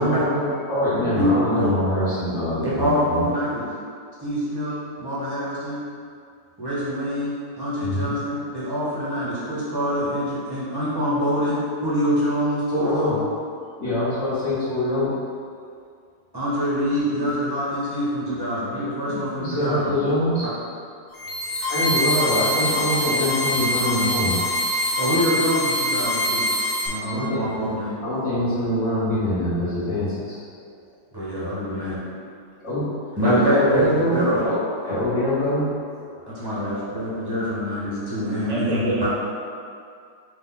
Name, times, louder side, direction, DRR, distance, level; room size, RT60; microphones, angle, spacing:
voice 1, 0.0-3.2 7.8-8.2 12.7-13.2 13.8-15.1 15.4-15.5 19.1-20.4 21.4-24.4 27.1-27.4 28.0-30.3 32.6-32.9 33.2-34.6 34.8-36.2, left 1 dB, 40° left, -15 dB, 1.2 m, -24 dB
voice 2, 2.6-3.7 4.2-5.8 6.6-13.1 16.3-19.9 25.0-26.4 26.8-28.0 31.1-32.0 33.2-34.4 36.3-39.1, equal, 20° right, -10 dB, 0.7 m, -25 dB
sound 1, 21.1-26.9, left 1 dB, 60° left, 1.2 m, -24 dB
voice 3, 36.6-36.9 38.5-39.1, right 1 dB, 55° right, -7 dB, 0.9 m, -29 dB
4.2 x 3.0 x 3.8 m, 2.3 s
omnidirectional pair, 2.2 m